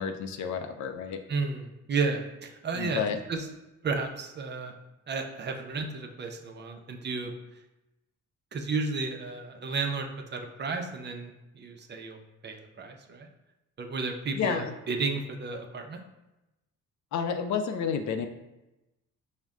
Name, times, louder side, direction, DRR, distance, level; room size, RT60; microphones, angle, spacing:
voice 1, 0.0-1.2 2.7-3.2 14.3-14.7 17.1-18.3, left 6 dB, 70° left, 7 dB, 0.5 m, -30 dB
voice 2, 1.3-3.0 3.3-3.5 3.8-4.7 5.1-7.3 8.5-12.2 12.4-13.3 13.8-16.0, right 4 dB, 35° right, 4 dB, 0.5 m, -33 dB
4.9 x 2.1 x 3.5 m, 0.96 s
cardioid pair, 90°, 30 cm